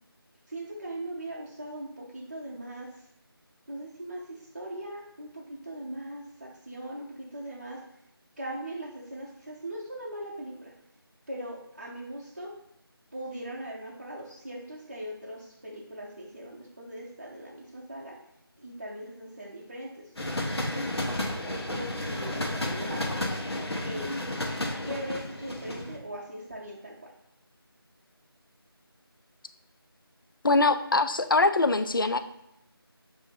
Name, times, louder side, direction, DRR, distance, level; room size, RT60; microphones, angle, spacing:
voice 1, 0.5-3.1 3.7-7.8 8.4-10.7 11.3-12.5 13.1-18.2 18.6-23.2 23.8-24.2 24.8-27.1, right 1 dB, 30° right, -6 dB, 0.6 m, -40 dB
sound 1, 20.2-26.0, left 1 dB, 90° left, 1.0 m, -32 dB
voice 2, 30.4-32.2, left 3 dB, 60° left, 10 dB, 0.4 m, -23 dB
7.0 x 2.7 x 2.7 m, 0.82 s
figure-of-eight pair, 170°, 13 cm